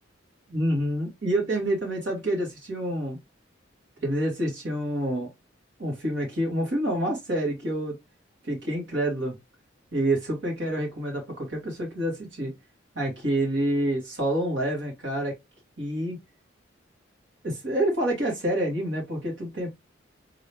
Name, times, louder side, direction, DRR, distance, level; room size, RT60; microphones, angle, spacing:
voice 1, 0.5-3.2 4.0-5.3 5.8-8.0 8.4-9.4 9.9-12.5 12.9-15.3 15.8-16.2 17.4-19.7, right 1 dB, 75° right, 2.3 m, -27 dB
3.7 x 3.5 x 2.9 m
head